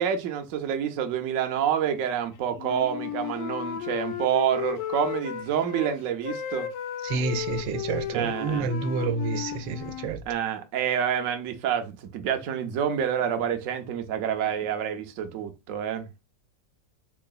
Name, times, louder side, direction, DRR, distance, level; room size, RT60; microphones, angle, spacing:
voice 1, 0.0-6.7 8.1-8.7 10.3-16.0, right 9 dB, 65° right, 0.9 m, -28 dB
Wind instrument woodwind instrument, 2.5-5.9 6.2-10.1, left 11 dB, 80° left, 1.3 m, -34 dB
voice 2, 7.0-10.2, right 4 dB, 85° right, 1.3 m, -29 dB
3.8 x 3.7 x 2.3 m
omnidirectional pair, 1.9 m